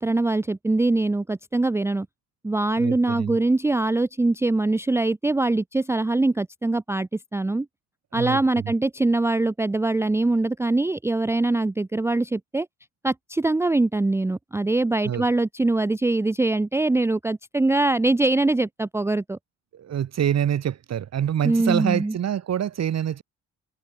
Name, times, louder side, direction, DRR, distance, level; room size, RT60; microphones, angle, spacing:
voice 1, 0.0-2.1 2.4-7.7 8.1-12.7 13.0-19.4 21.4-22.2, right 2 dB, 10° right, 0.5 m, -23 dB
voice 2, 2.8-3.4 8.1-8.7 15.0-15.2 19.7-23.2, right 9 dB, 60° right, 2.8 m, -26 dB
cardioid pair, 90°, 30 cm